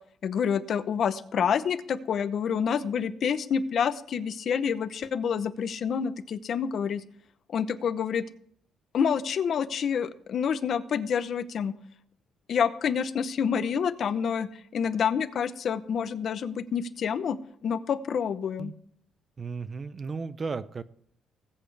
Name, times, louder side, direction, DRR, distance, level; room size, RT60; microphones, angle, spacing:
voice 1, 0.2-7.0 7.5-8.2 8.9-11.7 12.5-17.4 17.6-18.7, left 7 dB, 45° left, 12 dB, 0.7 m, -28 dB
voice 2, 19.4-20.8, right 4 dB, 25° right, 14 dB, 0.6 m, -34 dB
19.5 x 8.5 x 3.4 m, 0.66 s
cardioid pair, 170°, 0 cm